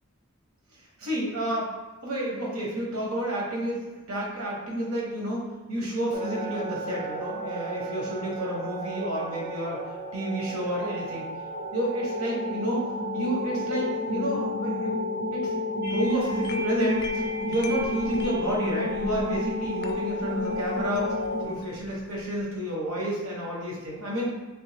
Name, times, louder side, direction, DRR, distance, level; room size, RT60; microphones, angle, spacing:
voice 1, 1.0-1.7 2.0-9.8 10.1-11.3 11.7-12.9 13.1-15.5 15.8-21.2 21.4-24.3, right 1 dB, 90° right, -3 dB, 1.1 m, -30 dB
sound 1, 6.1-21.4, left 1 dB, 40° right, 0.6 m, -31 dB
sound 2, 15.8-22.4, equal, 50° left, 0.3 m, -41 dB
3.4 x 3.2 x 3.3 m, 1.2 s
head